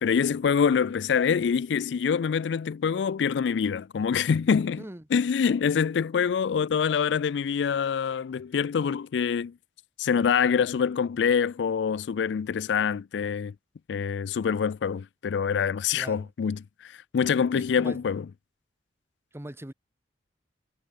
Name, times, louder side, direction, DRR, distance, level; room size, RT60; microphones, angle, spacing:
voice 1, 0.0-4.8 5.1-9.5 10.0-13.5 13.9-18.2, left 6 dB, 75° left, 0.4 m, -25 dB
voice 2, 4.8-5.1 16.0-16.3 17.5-18.0 19.3-19.7, right 1 dB, 15° right, 1.0 m, -41 dB
head